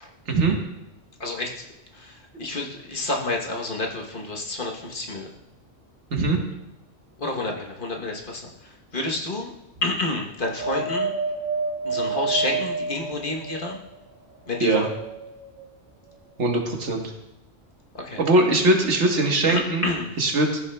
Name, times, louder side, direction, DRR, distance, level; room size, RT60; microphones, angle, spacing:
voice 1, 1.2-1.6 1.9-5.3 7.2-9.5 9.8-11.1 11.8-13.8 14.5-14.9 17.9-18.2 19.5-20.2, left 2 dB, 45° left, 0 dB, 1.1 m, -29 dB
Wind, 10.5-14.0 14.6-15.7 16.4-16.5, right 4 dB, 15° right, 2.7 m, -29 dB
voice 2, 16.4-17.1 18.2-19.8 20.2-20.6, right 2 dB, 70° right, 2 dB, 1.5 m, -21 dB
14.0 x 7.0 x 2.2 m, 0.91 s
omnidirectional pair, 1.3 m